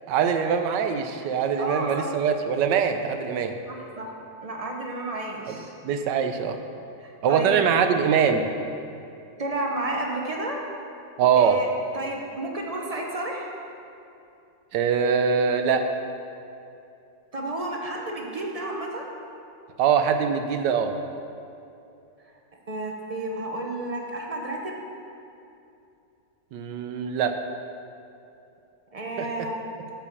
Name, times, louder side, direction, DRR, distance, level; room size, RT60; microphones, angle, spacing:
voice 1, 0.1-3.5 5.5-5.6 5.8-6.6 7.2-8.5 11.2-11.6 14.7-15.9 19.8-20.9 26.5-27.4 29.2-29.3, right 7 dB, 75° right, 7 dB, 1.3 m, -23 dB
voice 2, 1.6-2.1 3.7-4.1 4.4-5.7 7.0-7.6 9.4-10.6 11.4-11.7 11.9-13.5 17.3-19.1 22.7-24.8 28.9-29.6, right 2 dB, 45° right, 0 dB, 0.4 m, -31 dB
9.1 x 5.8 x 7.0 m, 2.7 s
omnidirectional pair, 2.0 m